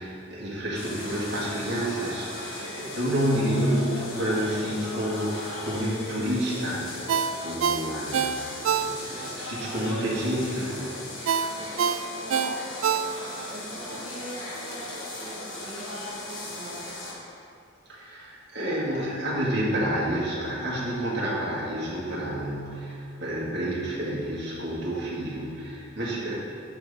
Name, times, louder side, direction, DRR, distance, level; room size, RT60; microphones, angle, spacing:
voice 1, 0.0-6.9 7.4-8.5 8.8-10.8 17.9-26.3, equal, 60° right, -6 dB, 2.0 m, -29 dB
sound 1, 0.7-17.1, left 1 dB, 90° left, 1.6 m, -37 dB
voice 2, 2.4-2.9 11.4-16.8, right 1 dB, 45° right, -4 dB, 1.4 m, -43 dB
Ringtone, 7.1-9.3 9.7-9.8 11.3-13.5 13.9-14.0, right 7 dB, 85° right, 0.3 m, -26 dB
8.9 x 3.7 x 6.8 m, 2.5 s
head